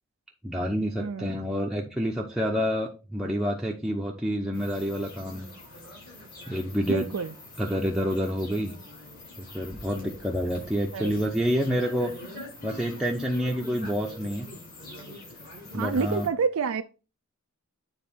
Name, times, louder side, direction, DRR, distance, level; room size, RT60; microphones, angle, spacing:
voice 1, 0.4-5.5 6.5-7.1 7.6-8.7 9.4-12.1 12.6-14.5 15.7-16.3, equal, ahead, 0.7 m, -28 dB
voice 2, 1.0-1.3 6.9-7.3 10.9-11.1 15.7-16.8, right 5 dB, 85° right, 0.5 m, -28 dB
sound 1, 4.5-16.3, left 2 dB, 45° left, 4.6 m, -44 dB
9.2 x 4.0 x 4.3 m
head